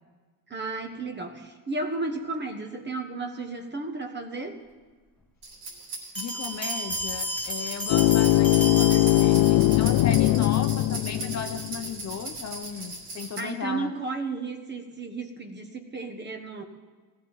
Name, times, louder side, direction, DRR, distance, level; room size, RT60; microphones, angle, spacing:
voice 1, 0.5-4.6 13.4-16.6, right 3 dB, 25° right, 5 dB, 1.3 m, -33 dB
sound 1, 5.4-13.4, right 3 dB, 85° right, 3.9 m, -38 dB
voice 2, 6.2-13.9, left 6 dB, 40° left, 6 dB, 0.9 m, -36 dB
sound 2, 6.2-9.9, equal, 5° left, 1.3 m, -33 dB
sound 3, 7.9-11.8, left 15 dB, 85° left, 0.5 m, -21 dB
18.5 x 14.0 x 4.0 m, 1.4 s
cardioid pair, 155°, 40 cm